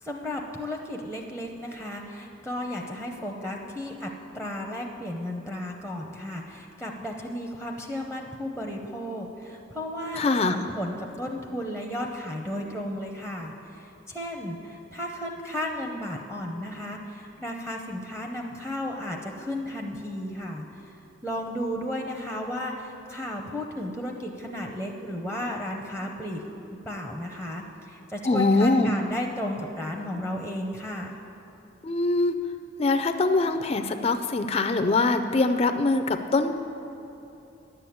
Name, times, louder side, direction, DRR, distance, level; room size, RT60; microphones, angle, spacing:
voice 1, 0.0-20.9 21.2-26.4 26.9-31.2, left 1 dB, 5° right, 1 dB, 0.7 m, -34 dB
voice 2, 10.2-10.6 28.2-29.0 31.8-32.4 32.8-36.5, left 3 dB, 30° left, 8 dB, 0.4 m, -23 dB
10.5 x 7.6 x 8.6 m, 3.0 s
head